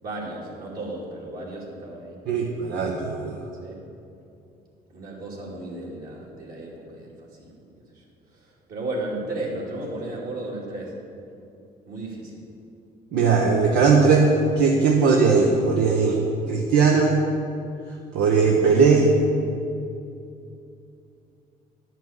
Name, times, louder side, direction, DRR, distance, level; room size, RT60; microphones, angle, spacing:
voice 1, 0.0-2.2 3.6-3.8 4.9-7.1 7.4-7.5 8.4-10.9 11.9-12.3, right 2 dB, 60° right, -4 dB, 2.7 m, -34 dB
voice 2, 2.3-3.4 13.1-16.2 16.5-17.2 18.1-19.1, right 4 dB, 80° right, -1 dB, 1.1 m, -19 dB
10.5 x 6.0 x 7.3 m, 2.6 s
cardioid pair, 110°, 17 cm